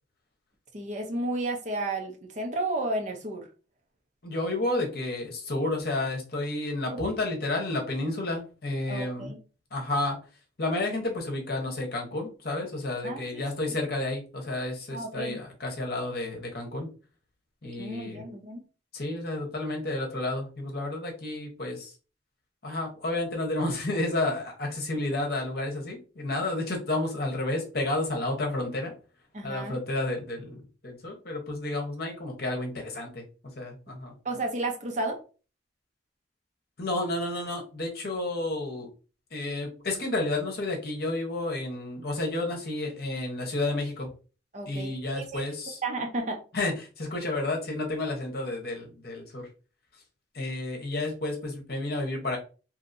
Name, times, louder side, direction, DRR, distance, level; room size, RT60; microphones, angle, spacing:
voice 1, 0.7-3.5 6.9-7.0 8.9-9.4 13.0-13.5 14.9-15.4 17.8-18.6 29.3-29.7 34.2-35.2 44.5-45.4 45.8-46.4, right 2 dB, 40° right, 3 dB, 0.6 m, -32 dB
voice 2, 4.2-9.3 9.7-10.2 10.6-16.9 17.6-18.2 18.9-21.9 22.6-28.9 29.4-33.2 33.6-34.2 36.8-38.9 39.3-44.1 44.7-45.8 46.5-49.5 50.3-52.4, left 2 dB, 55° left, 1 dB, 0.9 m, -31 dB
2.8 x 2.7 x 2.5 m, 0.35 s
head